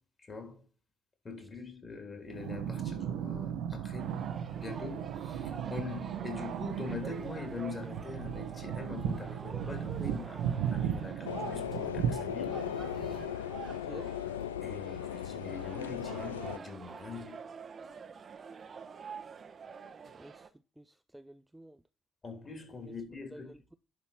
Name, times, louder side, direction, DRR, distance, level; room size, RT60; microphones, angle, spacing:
voice 1, 0.2-0.6 1.2-4.2 4.6-12.6 14.6-17.4 22.2-23.5, left 4 dB, 35° left, 3.5 m, -43 dB
sound 1, 2.3-13.2, right 9 dB, 65° right, 1.0 m, -36 dB
sound 2, 4.0-20.5, right 6 dB, 40° right, 1.0 m, -47 dB
sound 3, 11.2-16.6, left 10 dB, 85° left, 0.3 m, -37 dB
voice 2, 20.1-20.5 20.8-21.8 22.8-22.9 23.3-23.8, right 1 dB, 10° right, 0.5 m, -50 dB
11.0 x 4.3 x 4.4 m
figure-of-eight pair, 50°, 0 cm